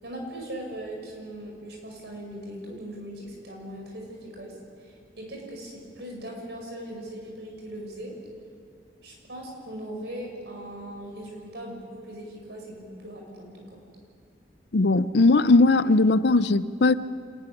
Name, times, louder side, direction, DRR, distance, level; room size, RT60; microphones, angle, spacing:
voice 1, 0.0-8.1 9.0-13.8, right 1 dB, 70° right, 0 dB, 5.8 m, -39 dB
voice 2, 14.7-16.9, left 3 dB, 65° left, 15 dB, 0.6 m, -19 dB
26.0 x 12.0 x 9.9 m, 2.3 s
head